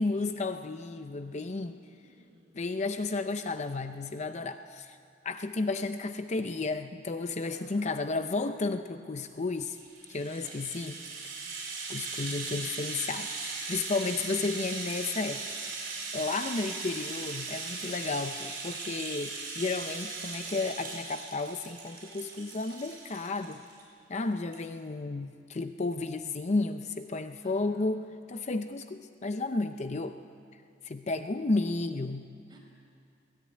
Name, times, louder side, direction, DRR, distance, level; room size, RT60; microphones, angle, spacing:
voice 1, 0.0-1.8 2.5-5.0 5.2-9.8 10.1-11.0 11.9-15.4 16.1-23.6 24.1-30.2 30.8-32.3, left 3 dB, 35° left, 9 dB, 0.6 m, -32 dB
voice 2, 1.4-2.6 7.4-7.9 10.3-10.9 11.4-11.6 16.1-16.3 27.4-27.9 32.5-32.6, right 1 dB, 25° right, -2 dB, 5.6 m, -59 dB
Rattle (instrument), 9.7-23.8 24.1-24.2 24.5-24.7, right 4 dB, 55° right, 7.5 m, -39 dB
21.5 x 18.0 x 9.8 m, 2.4 s
head